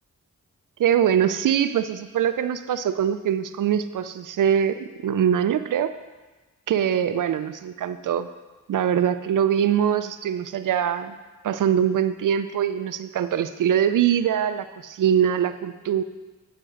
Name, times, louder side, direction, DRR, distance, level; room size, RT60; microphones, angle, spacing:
voice 1, 0.8-5.9 6.7-8.3 8.7-11.1 11.4-16.0, right 9 dB, 80° right, 11 dB, 0.5 m, -23 dB
9.9 x 5.2 x 6.4 m, 1.2 s
cardioid pair, 60°, 31 cm